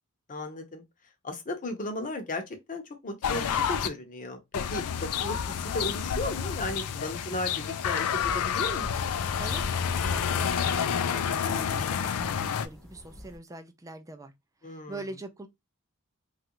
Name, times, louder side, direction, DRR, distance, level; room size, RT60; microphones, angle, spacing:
voice 1, 0.3-0.8 1.2-8.9 14.6-15.0, left 1 dB, 35° left, 0.8 m, -35 dB
sound 1, 3.2-3.9 4.5-12.7, left 7 dB, 85° left, 0.4 m, -29 dB
sound 2, 8.2-13.4, equal, ahead, 0.8 m, -43 dB
voice 2, 9.4-14.3 14.6-15.5, right 2 dB, 15° right, 0.4 m, -43 dB
3.1 x 2.4 x 2.9 m
head